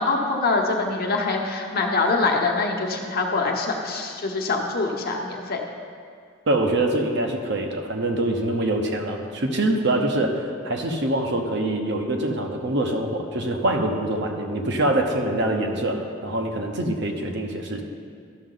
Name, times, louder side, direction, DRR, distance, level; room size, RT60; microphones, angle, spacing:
voice 1, 0.0-5.6, left 3 dB, 50° left, 1 dB, 1.0 m, -24 dB
voice 2, 6.5-17.8, right 1 dB, 60° right, 3 dB, 0.9 m, -24 dB
13.0 x 6.2 x 3.9 m, 2.2 s
head